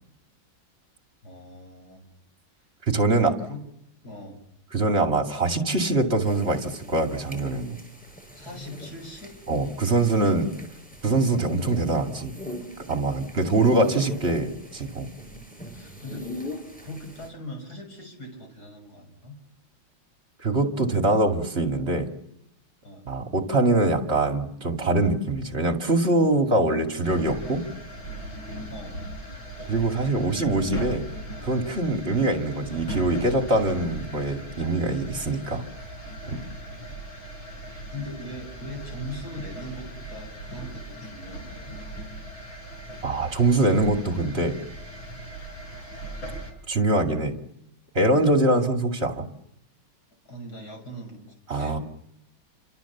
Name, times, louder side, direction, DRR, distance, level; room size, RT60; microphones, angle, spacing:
voice 1, 1.2-2.0 3.0-3.6 4.0-4.4 8.4-9.4 15.7-16.3 16.8-19.4 22.8-23.2 28.7-29.1 36.5-37.3 37.7-41.8 50.3-51.8, left 1 dB, 50° left, 3 dB, 7.1 m, -41 dB
voice 2, 2.9-3.3 4.7-7.8 9.5-10.5 11.0-12.3 12.9-15.1 20.4-22.1 23.1-27.6 29.7-31.0 31.4-35.6 36.3-36.4 43.0-44.6 46.7-47.4 47.9-49.3 51.5-51.8, right 2 dB, 30° right, 4 dB, 2.5 m, -23 dB
sound 1, 6.2-17.3, left 1 dB, 5° left, 7.6 m, -41 dB
sound 2, 27.0-46.5, right 1 dB, 70° left, 6.6 m, -38 dB
30.0 x 26.5 x 7.3 m, 0.80 s
omnidirectional pair, 2.2 m